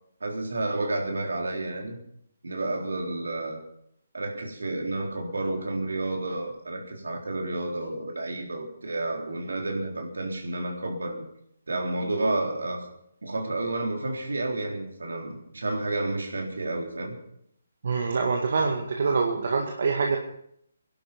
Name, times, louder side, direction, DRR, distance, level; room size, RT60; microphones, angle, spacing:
voice 1, 0.2-2.0 2.4-3.6 4.1-11.2 11.7-12.9 13.2-17.2, right 2 dB, 75° right, 2 dB, 3.8 m, -30 dB
voice 2, 17.8-20.2, right 4 dB, 60° right, 1 dB, 2.1 m, -25 dB
22.0 x 12.0 x 5.4 m, 0.70 s
figure-of-eight pair, 145°, 0 cm